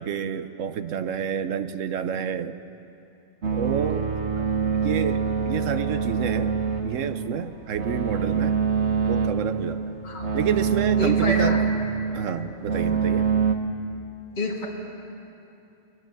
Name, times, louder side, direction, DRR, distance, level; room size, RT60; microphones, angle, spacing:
voice 1, 0.0-2.6 3.5-4.1 4.4-4.5 4.8-6.5 6.8-8.6 9.1-9.9 10.3-11.6 12.1-13.3, right 8 dB, 90° right, 11 dB, 1.2 m, -29 dB
sound 1, 3.4-13.6, right 6 dB, 65° right, 1.5 m, -25 dB
voice 2, 11.0-11.6 14.4-14.7, left 1 dB, 40° left, -2 dB, 2.0 m, -27 dB
21.5 x 20.5 x 7.1 m, 2.8 s
omnidirectional pair, 1.3 m